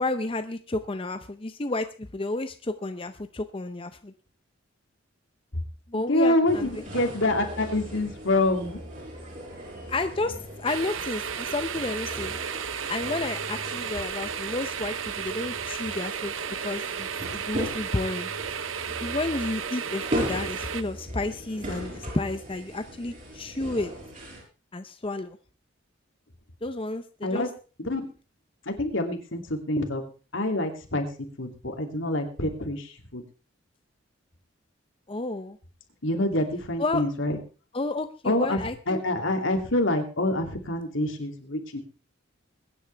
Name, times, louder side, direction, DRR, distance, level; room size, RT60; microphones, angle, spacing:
voice 1, 0.0-4.1 5.9-6.8 9.9-12.4 12.9-16.3 16.6-18.3 19.0-23.9 24.7-25.4 26.6-27.5 35.1-35.6 36.8-37.0 37.7-39.0, left 2 dB, 25° left, 9 dB, 0.6 m, -31 dB
voice 2, 5.9-8.8 27.2-27.5 27.8-28.1 28.7-30.0 30.3-31.1 31.4-33.2 36.0-37.4 38.2-38.6 38.9-41.8, left 1 dB, 75° left, 4 dB, 2.8 m, -26 dB
sound 1, 6.5-24.4, equal, 40° right, 7.4 m, -38 dB
sound 2, 10.7-20.8, right 7 dB, 90° right, 0.9 m, -33 dB
22.0 x 10.0 x 3.4 m, 0.36 s
head